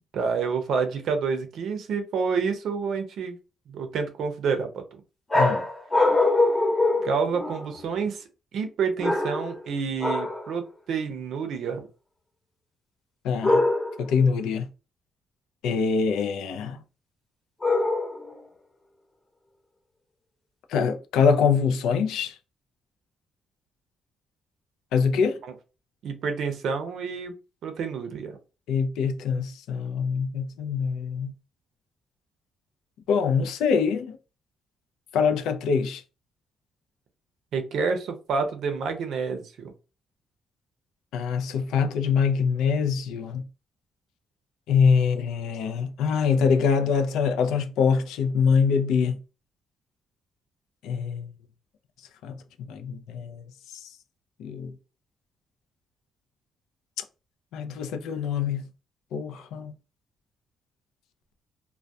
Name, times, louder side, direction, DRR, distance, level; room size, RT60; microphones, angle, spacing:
voice 1, 0.1-3.4 3.7-4.8 7.0-8.2 8.5-11.9 25.4-25.5 26.0-27.3 27.6-28.3 37.5-39.7, right 5 dB, 70° right, 0.5 m, -28 dB
voice 2, 5.3-5.7 13.2-13.6 14.0-14.7 15.6-16.8 20.7-22.4 24.9-25.4 28.7-31.3 33.1-34.2 35.1-36.0 41.1-43.4 44.7-49.2 50.8-51.3 52.2-53.4 53.7-53.9 54.4-54.7 57.5-58.6 59.1-59.7, left 6 dB, 90° left, 0.3 m, -24 dB
sound 1, 5.3-7.8 9.0-9.6 10.0-10.5 13.4-14.1 17.6-18.3, left 2 dB, 25° left, 0.8 m, -23 dB
2.2 x 2.1 x 2.6 m
cardioid pair, 90°, 0 cm